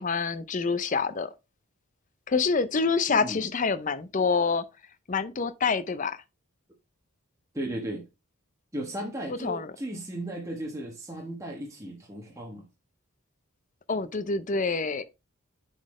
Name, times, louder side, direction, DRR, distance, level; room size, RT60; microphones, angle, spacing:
voice 1, 0.0-1.3 2.3-4.6 5.1-6.2 9.3-9.7 13.9-15.0, left 4 dB, 35° left, 0.5 m, -27 dB
voice 2, 3.1-3.5 7.5-8.1 8.7-12.7, right 1 dB, 15° right, 1.2 m, -36 dB
10.0 x 4.1 x 3.1 m
head